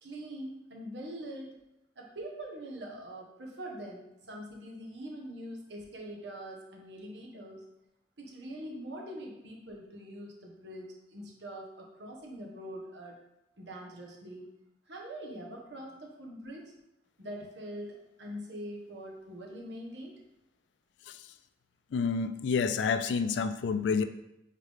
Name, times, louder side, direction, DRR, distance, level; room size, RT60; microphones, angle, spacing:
voice 1, 0.0-1.6 1.9-7.6 8.2-13.2 13.6-14.5 14.9-16.7 17.2-20.2, right 1 dB, 70° right, 0 dB, 1.4 m, -43 dB
voice 2, 21.9-24.0, left 5 dB, 75° left, 11 dB, 0.4 m, -29 dB
9.0 x 3.7 x 3.6 m, 0.88 s
head